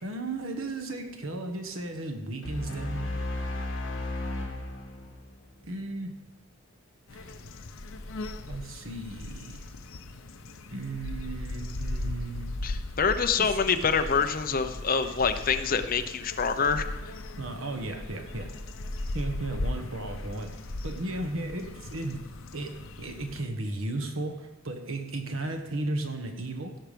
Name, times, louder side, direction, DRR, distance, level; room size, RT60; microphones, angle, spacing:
voice 1, 0.0-3.2 5.6-6.2 7.1-7.3 8.5-9.6 10.7-12.5 13.4-13.6 17.3-18.5 19.1-26.8, right 2 dB, 80° right, 5 dB, 1.4 m, -35 dB
sound 1, 2.4-5.8, left 2 dB, 60° left, 1.8 m, -34 dB
sound 2, 7.1-23.5, left 2 dB, 80° left, 0.8 m, -38 dB
voice 2, 12.6-17.1, left 5 dB, 45° left, 8 dB, 0.7 m, -26 dB
16.0 x 5.8 x 5.2 m, 1.1 s
head